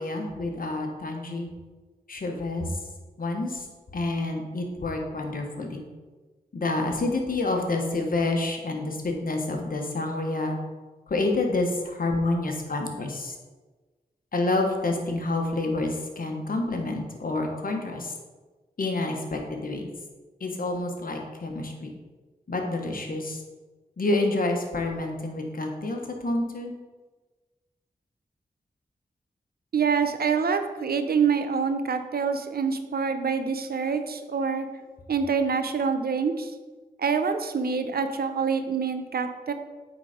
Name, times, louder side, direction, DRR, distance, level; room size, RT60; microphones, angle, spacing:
voice 1, 0.0-1.5 2.1-2.7 3.2-3.6 3.9-5.8 6.5-10.6 11.1-13.3 14.3-18.1 18.8-19.9 20.4-21.9 22.5-23.4 24.0-26.7, left 2 dB, 65° left, 2 dB, 1.3 m, -28 dB
voice 2, 29.7-34.7 35.1-36.5 37.0-39.5, right 5 dB, 75° right, 8 dB, 0.7 m, -26 dB
8.4 x 4.0 x 5.0 m, 1.3 s
cardioid pair, 55°, 16 cm